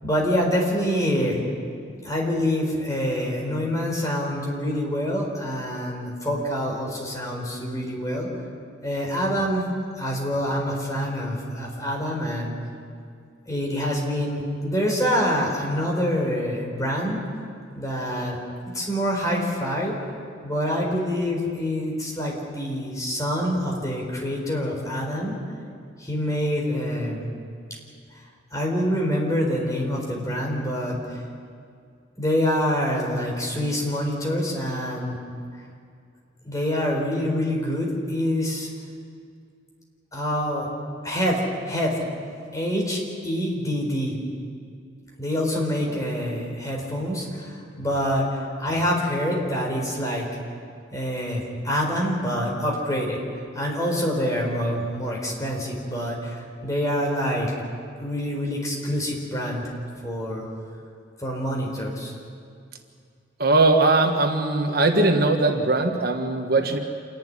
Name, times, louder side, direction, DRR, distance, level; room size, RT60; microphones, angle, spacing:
voice 1, 0.0-1.4 2.0-8.3 8.8-9.6 10.0-12.5 13.5-17.2 17.7-18.4 18.7-19.9 20.4-25.4 26.0-27.2 28.5-31.2 32.2-35.2 36.4-38.7 40.1-40.7 41.0-42.0 42.5-44.2 45.2-50.3 50.9-53.2 53.5-57.5 58.0-59.7 60.0-60.5 61.2-62.1, equal, 20° left, -1 dB, 4.3 m, -26 dB
voice 2, 63.4-66.8, right 2 dB, 55° right, 3 dB, 1.5 m, -20 dB
27.5 x 11.5 x 9.9 m, 2.3 s
head